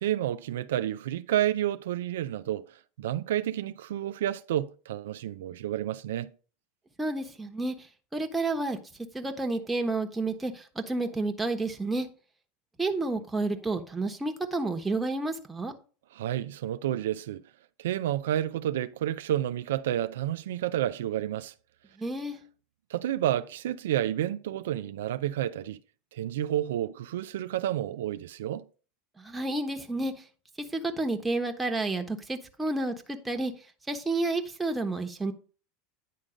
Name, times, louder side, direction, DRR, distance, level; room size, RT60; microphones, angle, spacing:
voice 1, 0.0-6.3 16.1-17.4 17.8-21.5 22.9-25.8 26.1-28.6, right 12 dB, 85° right, 0.4 m, -30 dB
voice 2, 7.0-7.7 8.1-8.8 9.1-12.1 12.8-15.7 22.0-22.4 29.2-30.1 30.6-33.5 33.9-35.3, right 2 dB, 10° right, 1.1 m, -30 dB
10.0 x 3.7 x 5.1 m
supercardioid pair, 115°, 0 cm